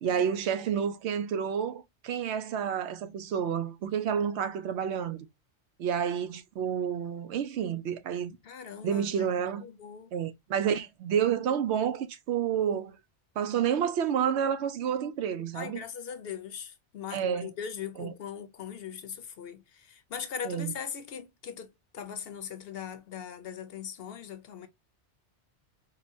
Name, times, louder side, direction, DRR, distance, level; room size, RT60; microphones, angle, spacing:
voice 1, 0.0-5.3 5.8-8.3 8.8-9.7 10.1-13.0 13.4-15.8 17.1-17.5 18.0-18.1 20.4-20.7, right 8 dB, 75° right, 0.8 m, -29 dB
voice 2, 8.4-9.1 9.6-10.1 15.5-24.7, left 7 dB, 60° left, 0.8 m, -40 dB
5.1 x 2.1 x 2.6 m
omnidirectional pair, 1.2 m